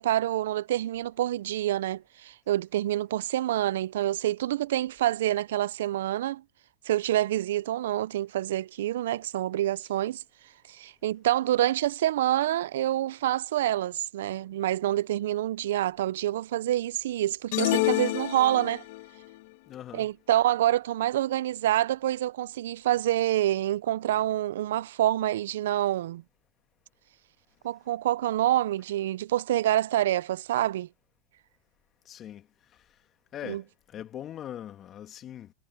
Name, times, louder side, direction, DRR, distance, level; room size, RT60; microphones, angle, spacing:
voice 1, 0.0-6.4 6.8-10.2 10.7-18.8 19.9-26.2 27.6-30.9 33.4-33.6, right 13 dB, 80° right, 0.4 m, -27 dB
sound 1, 17.5-19.1, left 21 dB, 65° left, 1.1 m, -27 dB
voice 2, 19.7-20.1 32.1-32.5 33.3-35.5, left 11 dB, 35° left, 2.0 m, -41 dB
hypercardioid pair, 110°, 0 cm